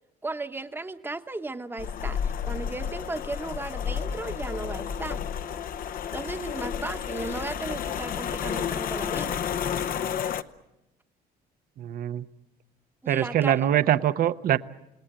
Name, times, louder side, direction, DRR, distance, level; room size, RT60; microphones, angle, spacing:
voice 1, 0.2-5.2 6.1-9.4 13.0-13.6, right 2 dB, 10° right, 9 dB, 1.1 m, -35 dB
sound 1, 1.8-10.4, left 8 dB, 60° left, 0.9 m, -31 dB
voice 2, 11.8-12.2 13.1-14.6, right 11 dB, 60° right, 13 dB, 0.9 m, -23 dB
28.5 x 18.5 x 8.9 m, 0.94 s
cardioid pair, 110°, 17 cm